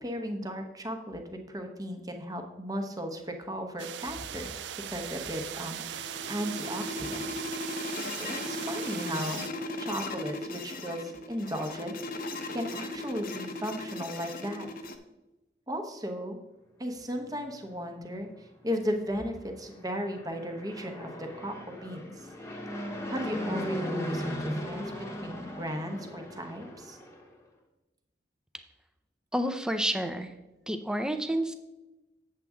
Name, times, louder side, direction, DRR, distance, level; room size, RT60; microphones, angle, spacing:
voice 1, 0.0-4.5 4.9-7.5 8.2-14.7 15.7-16.4 16.8-22.3 23.1-27.0, equal, 20° right, 4 dB, 0.9 m, -36 dB
sound 1, 3.8-9.5, right 10 dB, 75° right, 0.4 m, -39 dB
sound 2, 5.6-15.0, left 2 dB, 55° left, 0.7 m, -37 dB
Fixed-wing aircraft airplane, 19.8-27.2, equal, 15° left, 1.0 m, -37 dB
voice 2, 29.3-30.3 30.7-31.5, right 1 dB, 5° right, 8 dB, 0.5 m, -29 dB
8.2 x 7.6 x 3.6 m, 1.0 s
head